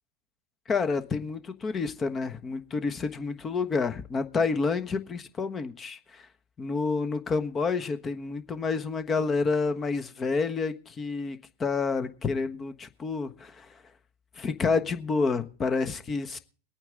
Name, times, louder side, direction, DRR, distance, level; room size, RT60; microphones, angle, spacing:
voice 1, 0.7-6.3 6.6-13.7 14.4-16.4, left 4 dB, 25° left, 1.3 m, -29 dB
22.0 x 9.0 x 3.8 m
hypercardioid pair, 95°, 0 cm